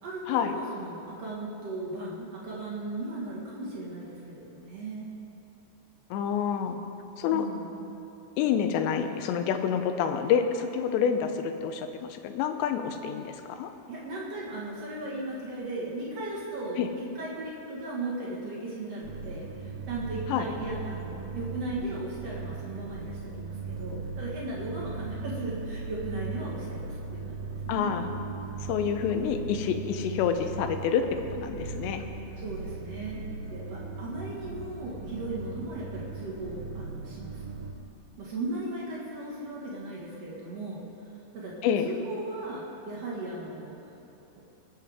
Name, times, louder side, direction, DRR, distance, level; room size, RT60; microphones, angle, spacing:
voice 1, 0.0-5.1 7.3-7.7 13.9-16.8 17.1-27.9 29.9-30.1 32.4-37.4 38.2-40.8 41.3-41.5 41.8-43.8, right 2 dB, 55° right, -6 dB, 1.9 m, -37 dB
voice 2, 6.1-6.8 7.2-7.5 8.4-13.7 16.8-16.9 20.3-20.5 27.7-28.1 28.6-31.0 31.3-32.0 41.6-41.9, left 8 dB, 80° left, 7 dB, 2.8 m, -28 dB
sound 1, 19.0-37.7, right 4 dB, 80° right, 1.7 m, -38 dB
22.0 x 7.6 x 3.6 m, 2.9 s
omnidirectional pair, 5.1 m